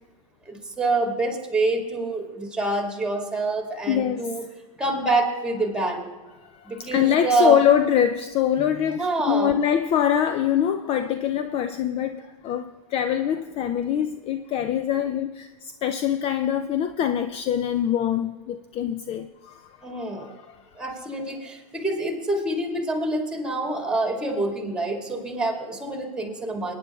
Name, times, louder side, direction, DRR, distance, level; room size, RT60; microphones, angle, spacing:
voice 1, 0.5-4.4 4.8-6.1 6.7-7.6 8.9-9.5 19.8-20.3 20.8-26.7, right 2 dB, 5° right, 2.1 m, -26 dB
voice 2, 3.9-4.3 6.5-20.6, left 9 dB, 30° left, 0.4 m, -24 dB
24.0 x 9.8 x 2.4 m
hypercardioid pair, 105°, 19 cm